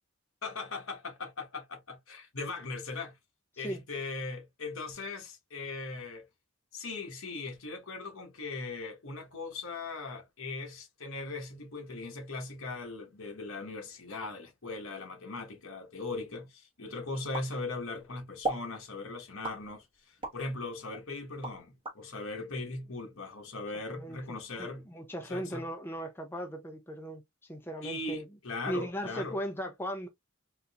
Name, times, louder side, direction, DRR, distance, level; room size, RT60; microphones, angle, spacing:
voice 1, 0.4-3.2 3.6-6.3 6.7-24.9 25.3-25.6 27.8-29.4, left 3 dB, 70° left, 1.3 m, -39 dB
sound 1, 17.3-18.0 18.4-18.7 19.4-20.4 20.9-22.0, right 2 dB, 25° right, 1.2 m, -36 dB
voice 2, 23.9-27.2 27.5-28.3 28.7-30.1, equal, 10° left, 0.5 m, -37 dB
3.7 x 2.8 x 2.4 m
head